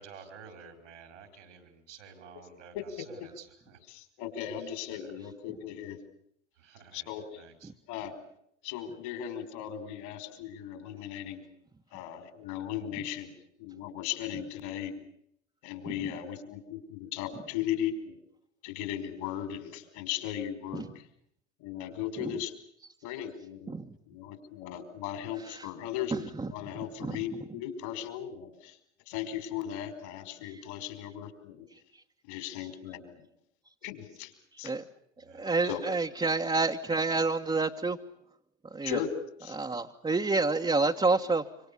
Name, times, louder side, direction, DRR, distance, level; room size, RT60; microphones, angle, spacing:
voice 1, 0.0-3.8 4.9-5.2 6.6-7.1 7.3-7.7 35.2-35.5, right 6 dB, 80° right, 7 dB, 5.6 m, -51 dB
voice 2, 3.9-6.0 6.9-7.4 7.9-8.2 8.6-11.4 11.9-15.0 15.6-18.2 18.6-21.1 21.6-22.6 23.0-23.7 24.1-28.8 29.1-31.7 32.2-33.3 33.8-34.7 35.6-35.8 38.8-39.1 39.4-39.6, left 10 dB, 65° left, 9 dB, 5.1 m, -37 dB
voice 3, 35.4-38.0 38.7-39.0 39.5-41.4, right 3 dB, 15° right, 2 dB, 1.5 m, -28 dB
26.5 x 26.0 x 7.0 m, 0.72 s
figure-of-eight pair, 65°, 35 cm